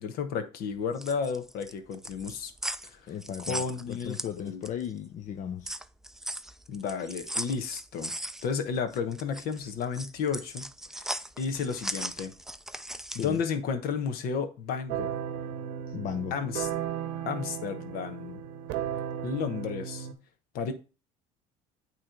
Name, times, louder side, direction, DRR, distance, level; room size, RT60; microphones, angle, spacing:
voice 1, 0.0-2.5 2.8-3.0 3.5-4.6 6.7-8.1 8.4-10.7 10.9-12.3 13.1-15.1 16.3-16.7 17.3-18.4 19.2-20.1 20.5-20.7, left 6 dB, 65° left, 1.1 m, -32 dB
sound 1, 0.8-4.9 5.3-13.4, right 1 dB, 5° right, 0.4 m, -38 dB
voice 2, 3.1-5.7 13.1-13.4 15.9-16.3, left 8 dB, 50° left, 0.6 m, -36 dB
sound 2, 14.9-20.1, right 9 dB, 75° right, 0.8 m, -35 dB
8.7 x 3.1 x 3.7 m
supercardioid pair, 80°, 17 cm